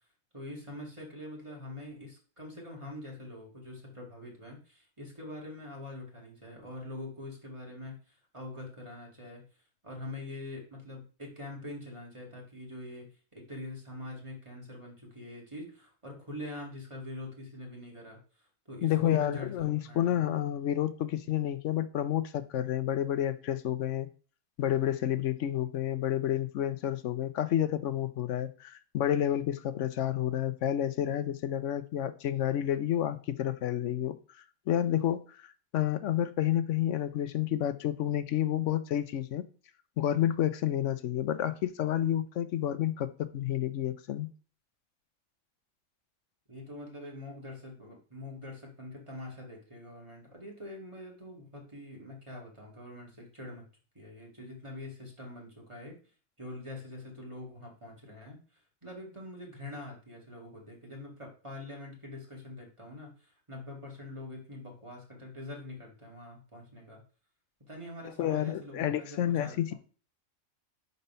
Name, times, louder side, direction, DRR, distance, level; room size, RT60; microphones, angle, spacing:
voice 1, 0.3-9.4 9.8-18.2 18.7-20.2 46.5-53.6 53.9-56.0 56.4-67.0 67.7-69.7, left 2 dB, 20° right, -2 dB, 1.9 m, -44 dB
voice 2, 18.8-24.1 24.6-34.2 34.7-39.4 40.0-44.3 68.2-69.7, left 11 dB, 65° left, 12 dB, 0.9 m, -30 dB
5.5 x 4.2 x 5.5 m, 0.39 s
omnidirectional pair, 1.5 m